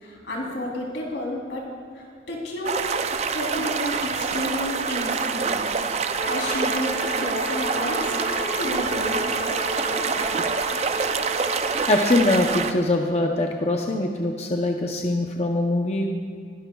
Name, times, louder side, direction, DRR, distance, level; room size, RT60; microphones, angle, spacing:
voice 1, 0.0-1.6 1.9-2.8 3.3-5.6 6.3-9.3, left 1 dB, 85° left, -3 dB, 3.3 m, -31 dB
sound 1, 2.6-12.7, right 5 dB, 35° right, 0.4 m, -26 dB
Bowed string instrument, 6.2-11.9, equal, 50° left, 2.2 m, -33 dB
voice 2, 11.9-16.1, left 2 dB, 35° left, 2 dB, 0.6 m, -23 dB
21.0 x 12.0 x 2.3 m, 2.2 s
head